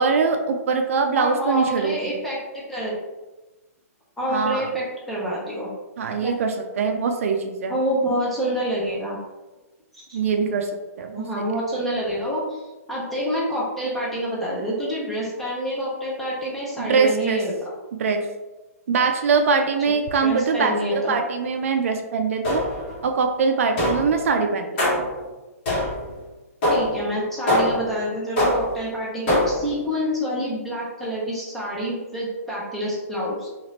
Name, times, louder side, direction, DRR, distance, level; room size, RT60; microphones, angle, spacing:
voice 1, 0.0-2.1 4.3-4.7 6.0-7.7 10.1-10.7 11.0-11.3 16.8-17.4 18.0-18.3 18.9-22.7 23.0-25.1, right 5 dB, 60° right, 5 dB, 0.3 m, -22 dB
voice 2, 1.1-3.0 4.2-5.7 6.2-6.3 7.7-9.2 9.9-10.2 11.2-12.6 12.9-17.7 20.2-21.1 26.7-33.5, equal, ahead, -7 dB, 0.6 m, -27 dB
sound 1, 22.4-23.0 23.8-24.2 24.8-25.2 25.7-26.1 26.6-27.0 27.5-27.9 28.4-28.8 29.3-29.7, left 1 dB, 40° left, 1.1 m, -22 dB
2.8 x 2.4 x 3.0 m, 1.1 s
hypercardioid pair, 160°, 8 cm